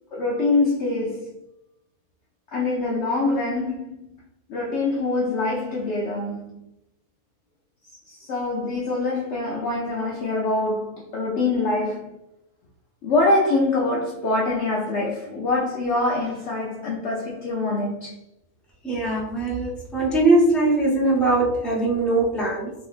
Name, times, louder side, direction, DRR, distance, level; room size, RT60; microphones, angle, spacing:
voice 1, 0.1-1.3 2.5-4.1 4.5-6.7 8.0-12.2 13.0-18.3, left 2 dB, 65° left, 0.7 m, -24 dB
voice 2, 18.8-22.7, right 2 dB, ahead, 0.5 m, -21 dB
3.8 x 2.4 x 2.4 m
omnidirectional pair, 1.7 m